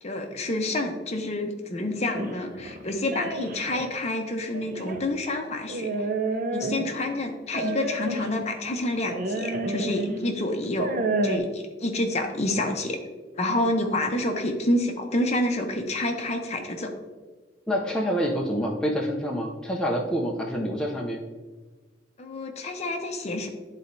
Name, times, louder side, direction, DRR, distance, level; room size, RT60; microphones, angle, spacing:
voice 1, 0.0-6.1 6.5-10.9 11.2-13.0 13.4-16.9 22.2-23.5, left 1 dB, 35° left, 4 dB, 0.7 m, -28 dB
sound 1, 2.1-3.9 4.5-5.1 5.7-7.1 7.5-8.3 9.0-10.2 10.6-11.4, right 2 dB, 50° right, 0.5 m, -29 dB
voice 2, 17.7-21.2, equal, 5° left, -2 dB, 0.5 m, -27 dB
10.5 x 4.0 x 2.6 m, 1.3 s
head